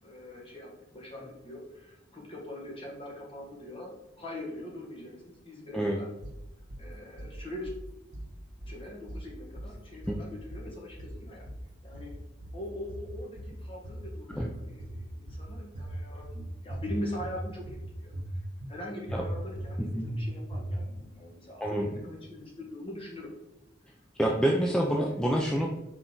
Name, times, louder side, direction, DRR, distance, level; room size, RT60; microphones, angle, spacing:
voice 1, 0.0-6.1 6.8-7.7 8.7-11.5 11.8-12.2 12.5-18.1 18.7-23.3 24.2-24.5, left 1 dB, 30° left, -2 dB, 1.7 m, -42 dB
sound 1, 6.2-6.8 7.2-7.8 8.1-8.8 9.1-9.8 10.0-10.7 11.0-11.7 11.9-12.6 12.9-13.6 13.8-14.5 14.8-15.5 15.8-16.4 16.7-17.4 17.7-18.3 18.6-18.7 19.1-19.7 20.0-20.2 20.5-21.0, right 1 dB, 85° right, 1.1 m, -39 dB
voice 2, 24.2-25.7, equal, 5° left, -1 dB, 0.5 m, -27 dB
6.0 x 4.4 x 3.9 m, 0.93 s
head